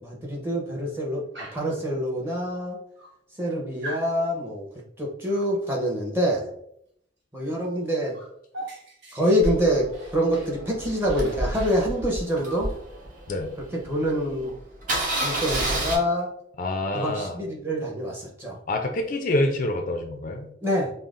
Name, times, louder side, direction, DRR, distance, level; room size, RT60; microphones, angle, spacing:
voice 1, 0.0-2.8 3.4-4.7 5.0-6.5 7.3-8.2 9.1-12.7 13.7-14.5 15.2-16.3 16.9-18.6 20.6-20.9, equal, 15° right, -3 dB, 0.8 m, -26 dB
Dog, 1.3-1.8 2.6-2.7 3.0-3.5 3.8-4.1 5.3-5.6 7.4-7.6 7.8-10.6 10.9-12.7 14.0-14.1 14.4-14.6 14.9-16.1, right 1 dB, 65° right, 1.3 m, -42 dB
Engine starting, 9.4-13.6 14.1-14.2 14.4-14.5 14.8-16.0, right 1 dB, 45° right, 0.9 m, -29 dB
voice 2, 16.6-17.4 18.7-20.5, left 1 dB, 45° left, 4 dB, 0.4 m, -27 dB
5.5 x 2.0 x 2.5 m, 0.71 s
head